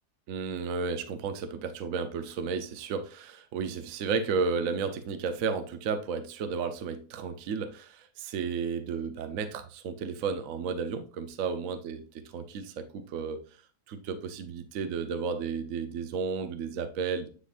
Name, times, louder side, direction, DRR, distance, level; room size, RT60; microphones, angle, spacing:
voice 1, 0.3-13.4 13.9-17.3, right 5 dB, 60° right, 9 dB, 1.0 m, -33 dB
9.9 x 3.7 x 2.5 m, 0.39 s
omnidirectional pair, 1.7 m